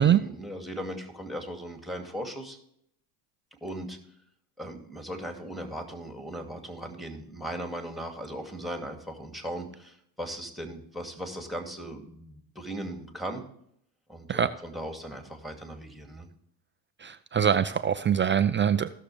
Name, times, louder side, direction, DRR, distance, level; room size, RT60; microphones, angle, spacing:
voice 1, 0.0-2.6 3.6-4.0 4.6-13.4 14.1-16.3, right 1 dB, ahead, 3 dB, 2.4 m, -38 dB
voice 2, 17.0-18.9, right 8 dB, 25° right, 11 dB, 0.4 m, -23 dB
16.5 x 6.7 x 3.4 m, 0.71 s
supercardioid pair, 80°, 49 cm